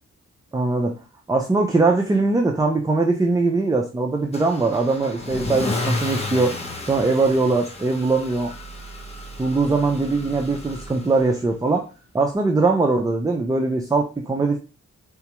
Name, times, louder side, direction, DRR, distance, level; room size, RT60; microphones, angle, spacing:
voice 1, 0.5-0.9 1.3-6.6 6.9-8.5 9.4-11.8 12.1-14.6, right 3 dB, 15° right, 1 dB, 0.4 m, -21 dB
Car / Engine starting / Accelerating revving vroom, 4.3-11.4, left 2 dB, 20° left, 0.7 m, -32 dB
4.0 x 2.3 x 2.9 m, 0.33 s
wide cardioid pair, 130°, 29 cm